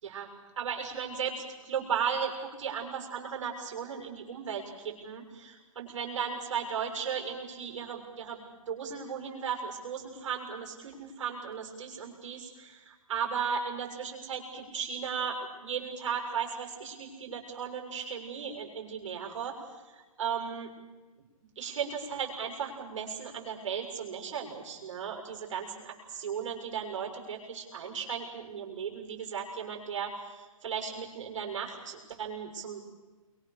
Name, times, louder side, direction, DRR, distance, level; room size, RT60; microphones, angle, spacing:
voice 1, 0.5-8.4 8.7-19.6 19.9-20.7 21.2-32.8, right 7 dB, 60° right, 2 dB, 6.7 m, -36 dB
28.5 x 23.0 x 6.8 m, 1.2 s
hypercardioid pair, 155°, 18 cm